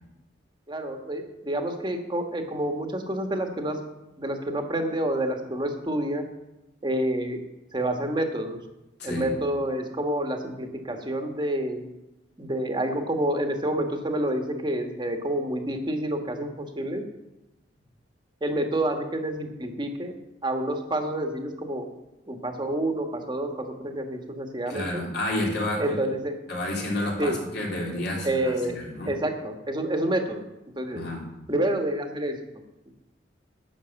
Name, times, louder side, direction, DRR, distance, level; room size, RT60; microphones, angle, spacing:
voice 1, 0.7-3.8 4.2-6.2 6.8-7.4 7.7-8.6 9.0-11.9 12.4-17.0 18.4-20.1 20.4-21.9 22.3-25.0 25.8-26.3 27.2-27.4 28.2-28.8 29.1-30.4 30.8-31.0 31.5-32.4, right 1 dB, 25° right, 4 dB, 1.4 m, -28 dB
voice 2, 9.0-9.3 24.7-26.0 26.5-29.1 30.9-31.3, left 1 dB, 60° left, -2 dB, 3.2 m, -30 dB
11.0 x 6.4 x 8.1 m, 0.97 s
head